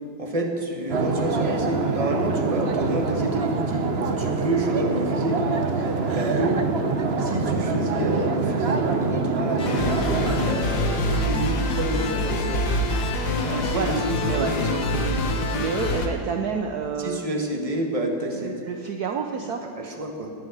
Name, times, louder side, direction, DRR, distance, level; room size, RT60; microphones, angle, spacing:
voice 1, 0.2-3.9 4.2-5.4 5.8-6.6 7.2-9.8 10.4-12.7 13.4-15.2 17.0-18.5 19.4-19.5 19.7-20.3, right 1 dB, 20° right, 2 dB, 1.6 m, -29 dB
sound 1, 0.9-10.7, right 4 dB, 45° right, 0.9 m, -25 dB
sound 2, 9.6-16.1, left 1 dB, 60° left, 1.9 m, -25 dB
voice 2, 13.4-14.0 14.2-14.6 15.5-17.2 18.4-19.6, right 6 dB, 65° right, 4 dB, 1.2 m, -29 dB
18.5 x 6.5 x 9.4 m, 2.7 s
omnidirectional pair, 2.0 m